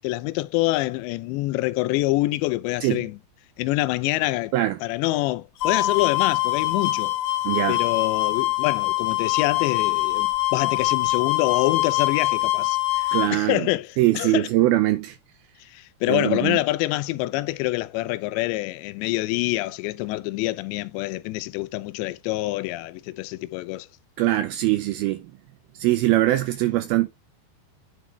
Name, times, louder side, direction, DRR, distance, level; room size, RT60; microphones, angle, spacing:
voice 1, 0.0-3.2 3.6-4.5 4.8-7.1 7.7-14.5 15.6-23.9, left 19 dB, 90° left, 2.8 m, -26 dB
sound 1, 5.6-13.3, left 18 dB, 70° left, 2.5 m, -23 dB
voice 2, 7.4-7.8 13.1-13.7 14.0-15.2 16.1-16.6 24.2-25.3 25.8-27.1, right 16 dB, 85° right, 2.2 m, -22 dB
11.0 x 5.2 x 3.3 m
omnidirectional pair, 5.0 m